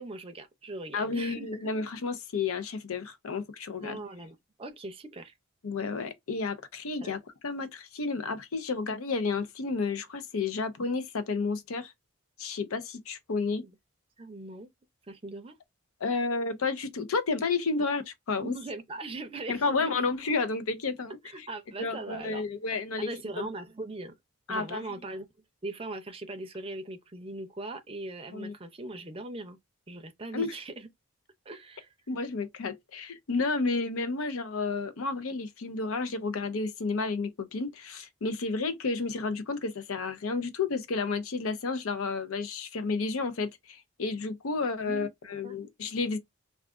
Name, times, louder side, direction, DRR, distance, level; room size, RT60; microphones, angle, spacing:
voice 1, 0.0-1.7 3.8-5.3 7.0-7.2 13.6-13.8 14.2-14.7 15.1-15.6 18.4-20.0 21.2-22.4 23.0-24.1 24.5-25.3 25.6-29.6 29.9-30.9 31.5-31.9 44.8-45.1 45.4-45.6, right 2 dB, 25° right, 0.5 m, -40 dB
voice 2, 0.9-4.0 5.6-11.9 12.4-13.7 16.0-18.6 19.5-21.5 21.8-23.1 23.4-23.5 24.5-24.8 28.3-28.5 30.3-30.5 32.1-46.2, left 4 dB, 80° left, 0.6 m, -31 dB
2.4 x 2.4 x 3.5 m
head